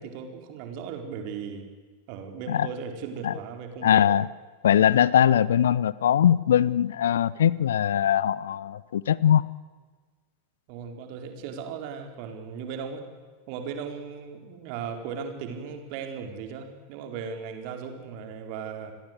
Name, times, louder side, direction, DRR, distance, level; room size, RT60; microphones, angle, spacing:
voice 1, 0.0-1.6 2.1-4.0 10.7-13.0 13.5-18.9, right 6 dB, 45° right, 5 dB, 4.4 m, -37 dB
voice 2, 3.8-4.3 4.6-9.5, left 10 dB, 60° left, 21 dB, 0.7 m, -21 dB
29.0 x 21.0 x 8.2 m, 1.4 s
figure-of-eight pair, 90°, 0 cm